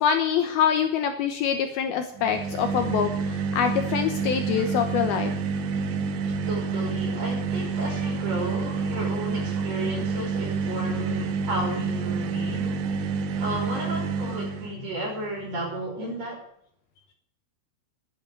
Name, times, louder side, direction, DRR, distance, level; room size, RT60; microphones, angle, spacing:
voice 1, 0.0-5.3, left 8 dB, 70° left, 7 dB, 2.6 m, -25 dB
sound 1, 2.2-14.8, right 4 dB, 90° right, 3.6 m, -28 dB
voice 2, 6.5-12.8 13.4-16.4, right 1 dB, 40° right, -1 dB, 6.2 m, -33 dB
12.0 x 10.5 x 8.2 m, 0.66 s
omnidirectional pair, 5.0 m